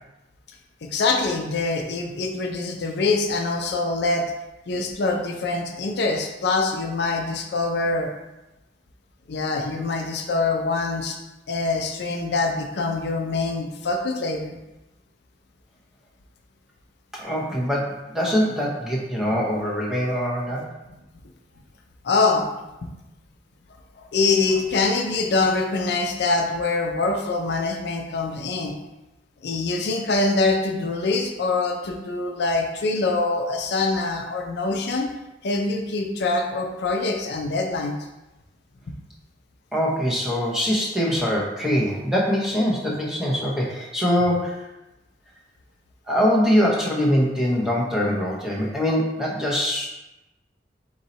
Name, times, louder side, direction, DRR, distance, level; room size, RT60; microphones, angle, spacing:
voice 1, 0.8-4.3 4.7-8.1 9.3-11.2 11.5-14.6 22.0-22.5 24.0-28.7 29.4-35.1 35.4-37.9, left 3 dB, 65° left, 2 dB, 0.5 m, -24 dB
voice 2, 17.1-20.7 39.7-44.7 46.1-49.9, equal, 5° right, -4 dB, 0.8 m, -23 dB
4.0 x 2.7 x 4.2 m, 0.99 s
head